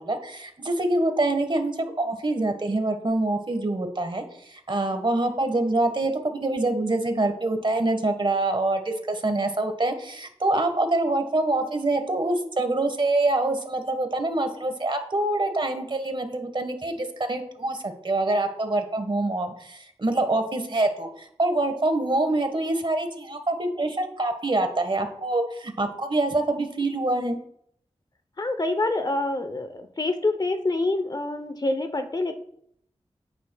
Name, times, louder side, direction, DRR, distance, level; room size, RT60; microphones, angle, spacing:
voice 1, 0.0-27.4, right 2 dB, 45° right, 6 dB, 1.4 m, -25 dB
voice 2, 28.4-32.3, left 2 dB, 35° left, 8 dB, 0.7 m, -26 dB
9.4 x 9.2 x 2.3 m, 0.69 s
wide cardioid pair, 65°, 11 cm